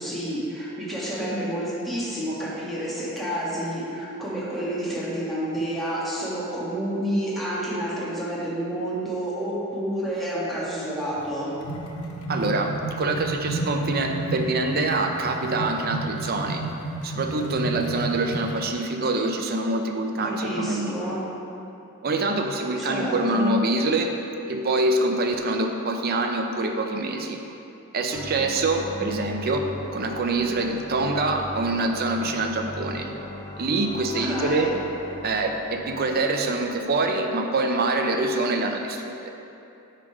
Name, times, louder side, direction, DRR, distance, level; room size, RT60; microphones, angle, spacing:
voice 1, 0.0-11.5 20.4-21.3 22.8-23.6 28.1-28.2 34.1-34.7, equal, ahead, -9 dB, 1.4 m, -29 dB
sound 1, 11.1-18.7, right 2 dB, 80° left, 0.7 m, -32 dB
voice 2, 12.3-16.6 17.0-21.1 22.0-24.1 24.5-27.4 27.9-29.6 29.9-33.1 33.6-34.7 35.2-39.3, right 2 dB, 45° right, 3 dB, 0.5 m, -25 dB
sound 2, 28.1-37.1, left 2 dB, 20° left, 0.4 m, -39 dB
8.8 x 3.3 x 4.9 m, 2.8 s
head